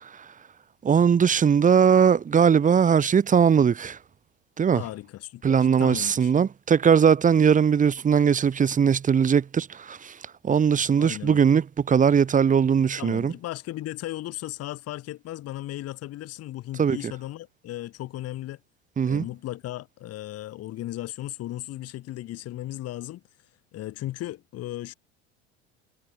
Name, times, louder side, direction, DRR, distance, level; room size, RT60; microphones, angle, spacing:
voice 1, 0.8-4.0 4.6-4.8 5.4-10.1 10.4-13.3 16.8-17.0 19.0-19.2, right 7 dB, 20° right, 1.1 m, -20 dB
voice 2, 4.7-6.4 11.0-11.5 13.0-18.6 19.1-23.2 23.7-24.9, left 15 dB, 45° left, 2.6 m, -36 dB
figure-of-eight pair, 70°, 34 cm